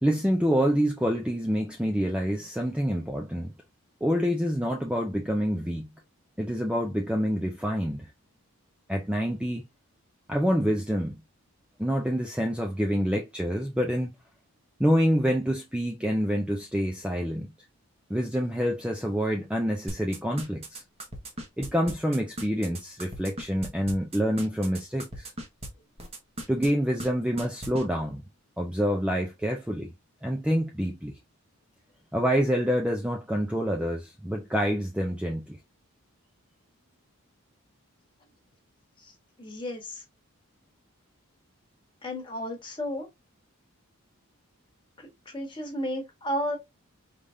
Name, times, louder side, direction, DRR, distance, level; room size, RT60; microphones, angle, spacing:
voice 1, 0.0-3.5 4.0-5.9 6.4-8.1 8.9-9.6 10.3-11.2 11.8-14.1 14.8-17.5 18.1-20.8 21.6-25.3 26.5-28.2 28.6-29.9 30.2-31.2 32.1-35.6, equal, 5° right, 0.5 m, -27 dB
sound 1, 19.9-25.7 26.0-26.7 27.0-27.1 27.4-27.8, right 1 dB, 25° right, 1.2 m, -37 dB
voice 2, 39.4-40.0 42.0-43.1 45.0-46.6, equal, 20° left, 1.4 m, -33 dB
5.0 x 3.5 x 2.6 m
head